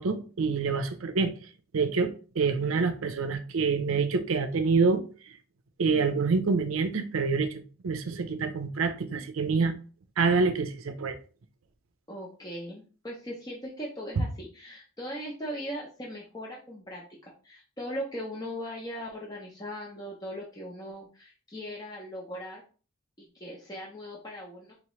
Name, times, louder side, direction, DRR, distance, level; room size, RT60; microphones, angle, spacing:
voice 1, 0.0-1.3 1.7-5.3 5.8-9.7 10.2-11.2 14.2-14.3, right 4 dB, 70° right, 0.5 m, -27 dB
voice 2, 12.1-22.6 23.2-24.7, equal, 20° left, 0.7 m, -39 dB
4.1 x 2.9 x 3.1 m
head